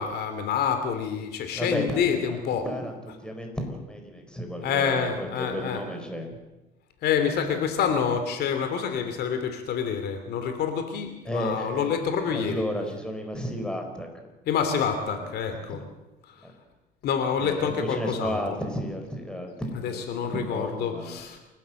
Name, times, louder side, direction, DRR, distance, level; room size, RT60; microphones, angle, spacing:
voice 1, 0.0-2.6 4.6-5.8 7.0-12.6 14.5-15.8 17.0-18.4 19.8-21.4, left 7 dB, 70° left, 7 dB, 2.9 m, -27 dB
voice 2, 1.5-6.4 11.2-12.0 12.2-14.1 15.1-15.3 15.7-15.8 16.4-16.5 17.4-21.2, equal, 5° left, 4 dB, 4.7 m, -33 dB
28.5 x 12.5 x 7.8 m, 1.1 s
cardioid pair, 110°, 17 cm